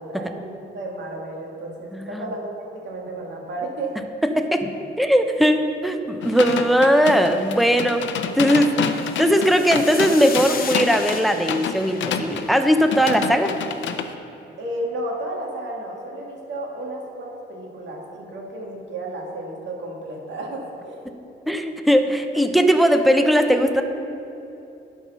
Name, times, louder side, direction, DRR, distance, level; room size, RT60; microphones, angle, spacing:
voice 1, 0.0-2.5 2.7-4.0 14.6-21.0, right 1 dB, 65° right, -1 dB, 2.0 m, -32 dB
voice 2, 1.9-2.2 4.3-8.0 8.3-13.5 21.5-23.8, equal, ahead, 6 dB, 0.7 m, -19 dB
sound 1, 6.2-14.1, left 6 dB, 70° left, 0.6 m, -29 dB
sound 2, 8.7-13.2, left 5 dB, 45° left, 1.0 m, -36 dB
11.5 x 4.7 x 5.6 m, 2.8 s
cardioid pair, 90°, 20 cm